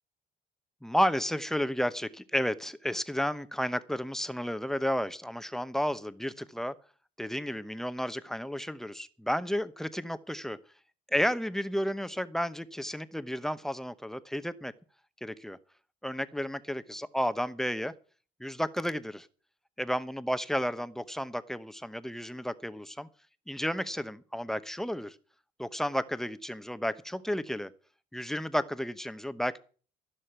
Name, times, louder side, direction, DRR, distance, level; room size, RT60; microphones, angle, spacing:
voice 1, 0.8-6.7 7.2-10.6 11.1-14.7 15.2-15.6 16.0-17.9 18.4-19.3 19.8-23.1 23.5-25.2 25.6-27.7 28.1-29.6, equal, ahead, 13 dB, 0.9 m, -32 dB
15.0 x 6.5 x 9.1 m, 0.40 s
cardioid pair, 110°, 17 cm